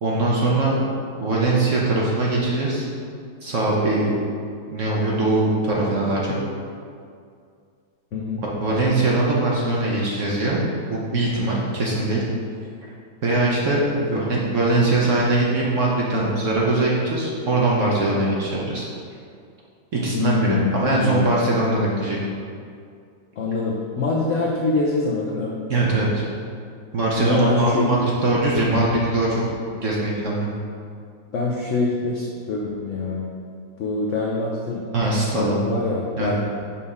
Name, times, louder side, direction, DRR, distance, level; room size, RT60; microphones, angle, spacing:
voice 1, 0.0-0.7 1.2-2.9 3.4-4.1 4.7-6.4 8.6-10.6 10.9-12.2 13.2-13.8 14.1-18.9 19.9-22.2 25.7-26.2 26.9-29.4 29.8-30.5 34.9-35.5 36.2-36.3, right 2 dB, 55° right, -4 dB, 1.0 m, -21 dB
voice 2, 8.1-8.4 14.0-14.3 20.1-21.4 23.4-25.5 27.2-27.9 31.3-33.3 33.8-34.9 35.2-36.3, left 3 dB, 70° left, -3 dB, 0.7 m, -25 dB
5.7 x 3.5 x 5.3 m, 2.3 s
omnidirectional pair, 2.0 m